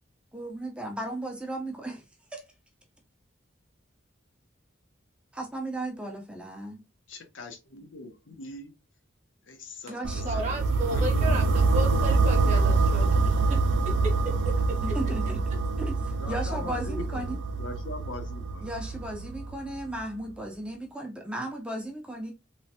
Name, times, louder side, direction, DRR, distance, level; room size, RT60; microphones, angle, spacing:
voice 1, 0.3-2.1 2.3-2.4 5.3-6.8 9.9-10.4 12.4-12.6 14.8-15.4 15.8-17.4 18.6-22.3, right 1 dB, 5° right, 0.4 m, -35 dB
voice 2, 7.1-8.7 9.5-10.7 10.9-11.5 16.2-18.7, left 2 dB, 80° left, 0.7 m, -41 dB
sound 1, 10.0-20.0, right 3 dB, 70° right, 0.3 m, -25 dB
voice 3, 10.2-11.4 11.7-13.6 14.0-14.5, right 1 dB, 40° right, 0.8 m, -33 dB
3.1 x 2.0 x 2.7 m
head